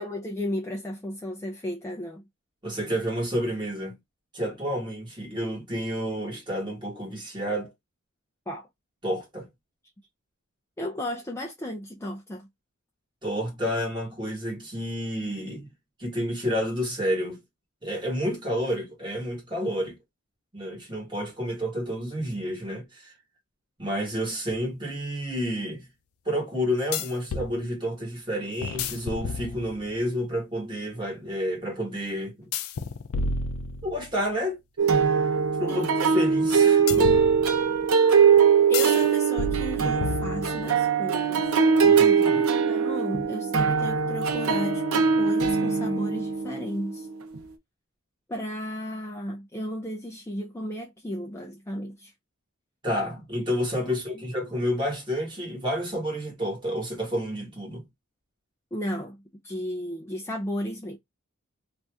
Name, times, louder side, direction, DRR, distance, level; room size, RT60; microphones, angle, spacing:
voice 1, 0.0-2.2 8.5-8.7 10.8-12.5 35.7-35.9 36.6-37.2 38.7-41.5 42.3-47.1 48.3-52.1 53.8-54.2 58.7-59.2 59.4-61.0, left 1 dB, 10° left, 0.4 m, -34 dB
voice 2, 2.6-3.9 4.3-7.7 9.0-9.5 13.2-15.7 16.0-17.4 17.8-20.0 20.5-23.1 23.8-25.9 26.2-32.5 33.8-34.6 35.1-35.2 35.6-37.1 41.8-42.4 52.8-57.8, equal, 20° right, 1.3 m, -30 dB
sound 1, 24.5-24.6 26.9-27.5 28.6-29.9 32.5-34.2 36.9-37.9 38.7-39.0 39.4-40.7, left 4 dB, 75° left, 0.4 m, -31 dB
sound 2, 34.8-47.4, right 6 dB, 75° right, 0.6 m, -22 dB
2.6 x 2.5 x 3.3 m
head